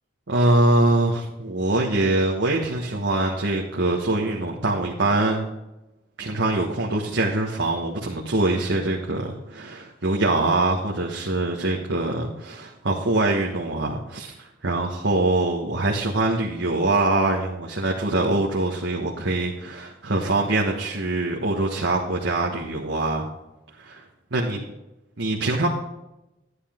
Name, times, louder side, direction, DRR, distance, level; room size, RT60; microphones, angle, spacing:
voice 1, 0.3-5.5 6.2-23.3 23.8-24.0 24.3-24.6 25.2-25.7, right 2 dB, 80° right, -1 dB, 1.4 m, -23 dB
11.0 x 9.8 x 3.7 m, 0.93 s
head